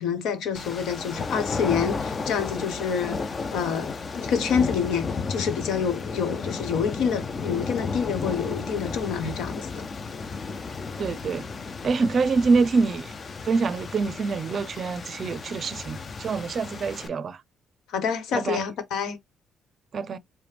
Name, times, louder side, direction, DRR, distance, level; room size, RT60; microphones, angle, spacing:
voice 1, 0.0-3.2 3.5-9.7 17.9-19.2, left 7 dB, 80° left, 1.1 m, -27 dB
sound 1, 0.5-17.1, left 4 dB, 35° left, 0.5 m, -33 dB
voice 2, 11.0-11.5 11.8-13.1 13.4-17.4 18.3-18.7 19.9-20.2, right 4 dB, 45° right, 0.5 m, -25 dB
4.8 x 2.1 x 3.3 m
cardioid pair, 115°, 0 cm